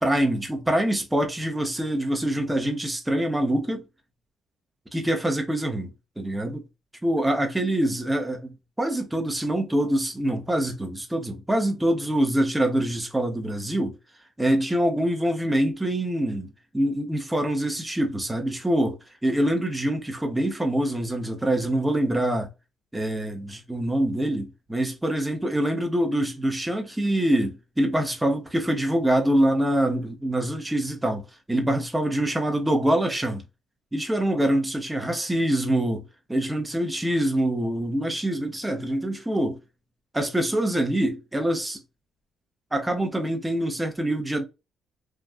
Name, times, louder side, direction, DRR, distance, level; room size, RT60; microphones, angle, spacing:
voice 1, 0.0-3.8 4.9-5.9 6.2-6.6 7.0-13.9 14.4-16.5 16.7-22.5 22.9-31.2 31.5-33.4 33.9-39.6 40.1-41.8 42.7-44.4, right 1 dB, 10° right, 0.9 m, -25 dB
3.5 x 2.4 x 2.5 m
cardioid pair, 90°, 0 cm